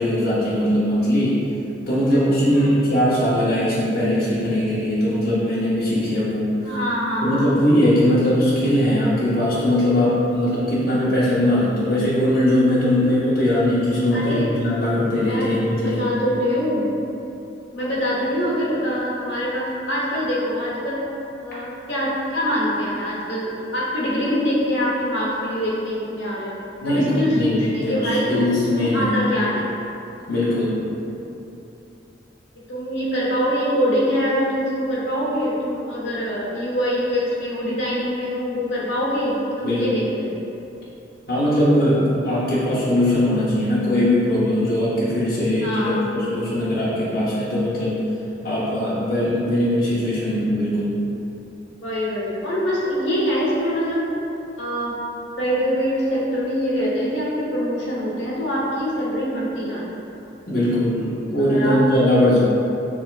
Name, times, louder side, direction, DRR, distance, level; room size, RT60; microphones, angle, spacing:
voice 1, 0.0-1.4 1.9-6.6 7.2-16.0 26.8-29.2 30.3-30.8 39.6-40.1 41.3-48.0 48.4-51.0 60.5-62.4, left 1 dB, 50° left, -10 dB, 0.8 m, -20 dB
voice 2, 6.6-7.5 14.1-14.5 15.1-15.5 15.8-16.9 17.7-21.1 21.4-26.5 26.8-29.7 32.7-40.3 45.6-46.5 51.8-54.1 54.6-54.9 55.4-60.0 61.4-61.8, equal, 80° left, -6 dB, 1.1 m, -24 dB
6.8 x 3.2 x 2.4 m, 2.9 s
head